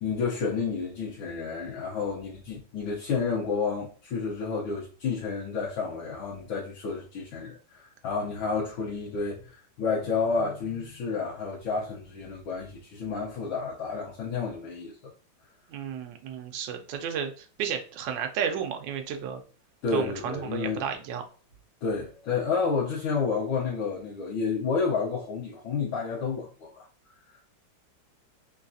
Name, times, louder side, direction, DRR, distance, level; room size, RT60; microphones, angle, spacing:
voice 1, 0.0-15.1 19.8-20.8 21.8-26.8, left 5 dB, 85° left, 1.6 m, -30 dB
voice 2, 15.7-19.4 19.9-21.2, right 7 dB, 75° right, 1.2 m, -32 dB
3.9 x 2.3 x 2.6 m
omnidirectional pair, 2.1 m